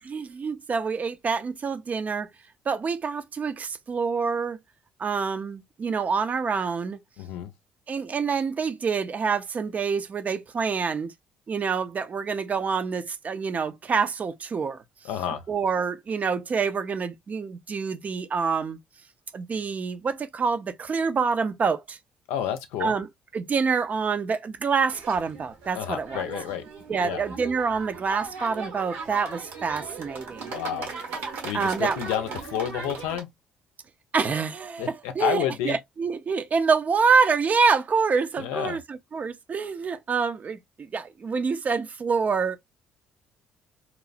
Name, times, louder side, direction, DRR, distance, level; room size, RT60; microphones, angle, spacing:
voice 1, 0.0-2.3 2.7-4.6 5.0-7.0 7.9-11.1 11.5-14.8 15.5-18.8 19.3-22.0 22.8-23.1 23.3-26.3 26.9-30.6 31.5-32.0 34.1-42.6, right 5 dB, 40° right, 0.5 m, -26 dB
voice 2, 7.2-7.5 15.0-15.4 22.3-22.9 25.7-26.6 27.0-27.2 30.5-30.9 31.4-33.3 34.8-35.8 38.4-38.8, left 10 dB, 80° left, 0.4 m, -30 dB
sound 1, 24.9-33.2, right 4 dB, 80° right, 1.1 m, -38 dB
2.9 x 2.0 x 2.4 m
hypercardioid pair, 55°, 4 cm